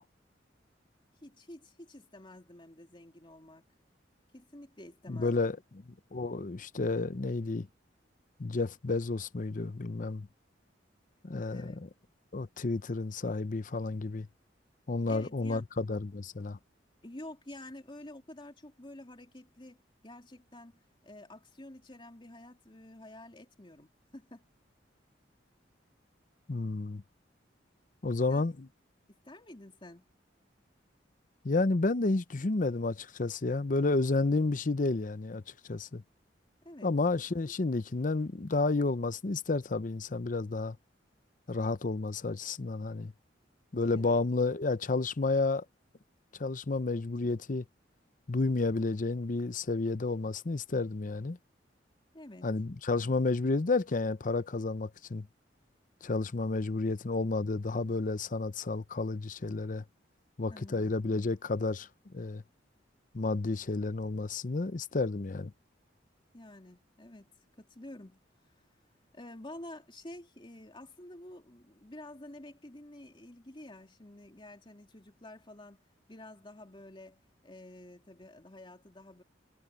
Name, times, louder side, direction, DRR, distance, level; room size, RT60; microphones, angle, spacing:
voice 1, 1.2-3.6 4.3-5.5 11.5-11.8 15.1-15.6 17.0-24.5 28.3-28.4 29.1-30.0 36.6-36.9 43.9-44.2 52.1-52.5 60.5-60.9 66.3-67.3 67.6-68.2 69.1-75.8 76.1-79.2, left 1 dB, 25° left, 2.8 m, -49 dB
voice 2, 5.1-5.6 6.1-7.7 8.4-10.3 11.2-11.7 12.3-14.3 14.9-16.6 26.5-27.0 28.0-28.7 31.4-35.4 35.7-36.0 36.8-40.8 41.5-43.1 43.7-45.6 46.4-47.6 48.3-51.4 52.4-55.3 56.0-59.8 60.4-61.9 62.1-62.4 63.1-65.5, left 3 dB, 45° left, 0.7 m, -31 dB
head